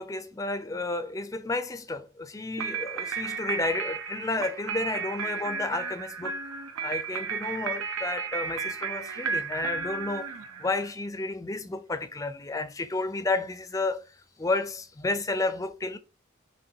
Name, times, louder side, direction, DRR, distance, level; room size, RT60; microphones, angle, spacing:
voice 1, 0.0-6.4 6.8-10.3 10.6-14.1 14.4-16.0, left 2 dB, 15° left, 0.4 m, -31 dB
sound 1, 2.6-10.9, right 5 dB, 90° right, 0.7 m, -33 dB
5.7 x 3.0 x 2.7 m
head